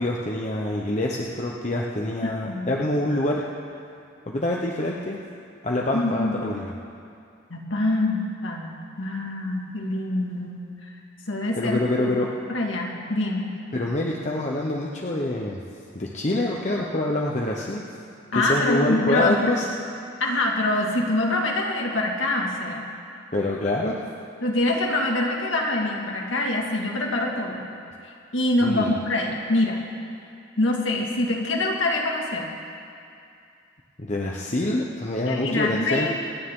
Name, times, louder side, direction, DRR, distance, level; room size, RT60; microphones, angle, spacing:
voice 1, 0.0-3.4 4.3-5.2 5.6-6.7 11.6-12.3 13.7-15.6 15.9-17.8 18.3-19.7 23.3-24.0 28.6-28.9 34.0-36.1, left 1 dB, 35° left, -2 dB, 0.9 m, -26 dB
voice 2, 5.9-6.4 7.5-10.6 11.3-11.8 12.1-13.5 18.3-19.5 20.2-22.8 24.4-27.6 28.3-29.8 30.6-32.5 35.2-36.1, left 2 dB, 85° left, -1 dB, 2.0 m, -25 dB
27.0 x 9.4 x 3.8 m, 2.5 s
head